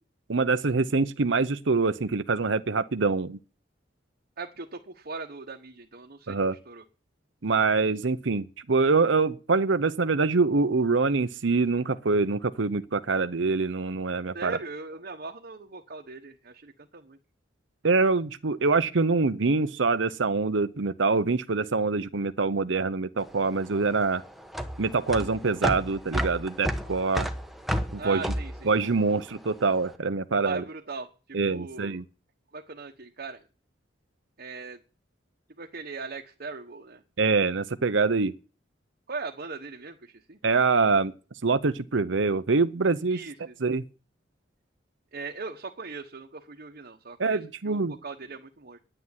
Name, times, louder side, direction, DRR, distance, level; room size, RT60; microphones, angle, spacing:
voice 1, 0.3-3.4 6.3-6.5 7.4-14.6 17.8-24.2 24.8-27.3 27.9-28.2 28.7-30.6 31.3-32.0 37.2-38.3 40.4-41.1 41.4-43.2 43.6-43.8 47.2-48.0, right 4 dB, 70° right, 0.8 m, -25 dB
voice 2, 4.4-6.8 14.3-17.2 28.0-28.7 30.4-32.0 32.5-33.4 34.4-34.8 35.6-37.0 39.1-40.4 43.1-43.5 45.1-48.8, right 4 dB, 50° right, 1.2 m, -39 dB
sound 1, 23.2-29.7, equal, ahead, 1.3 m, -32 dB
10.0 x 9.8 x 9.5 m
head